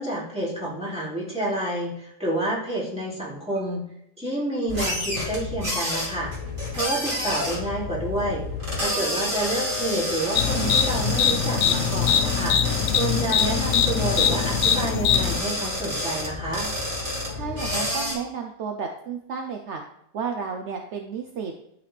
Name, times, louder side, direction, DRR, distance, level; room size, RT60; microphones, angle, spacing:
voice 1, 0.0-3.8 4.2-6.3 6.7-8.4 8.8-16.7, right 1 dB, 5° right, -8 dB, 2.6 m, -29 dB
sound 1, 4.7-18.1, left 1 dB, 40° right, 2.3 m, -29 dB
sound 2, 10.4-15.4, left 8 dB, 70° left, 0.8 m, -22 dB
voice 2, 17.3-19.8 20.1-21.5, right 6 dB, 65° right, 3 dB, 0.9 m, -32 dB
11.5 x 4.1 x 3.3 m, 0.75 s
omnidirectional pair, 1.4 m